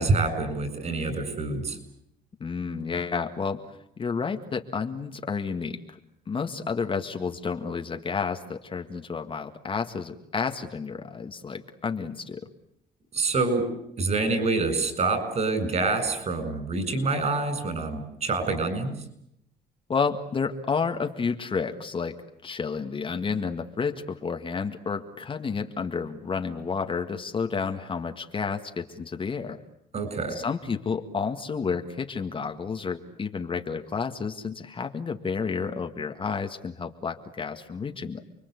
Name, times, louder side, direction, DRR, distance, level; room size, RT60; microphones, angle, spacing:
voice 1, 0.0-1.8 13.1-13.7 14.0-18.9 29.9-30.4, right 3 dB, 40° right, 10 dB, 7.8 m, -26 dB
voice 2, 2.4-6.0 6.3-12.4 19.9-22.2 22.4-29.6 30.3-38.2, left 5 dB, 30° left, 5 dB, 1.9 m, -31 dB
29.5 x 22.0 x 8.4 m, 0.76 s
cardioid pair, 110°, 17 cm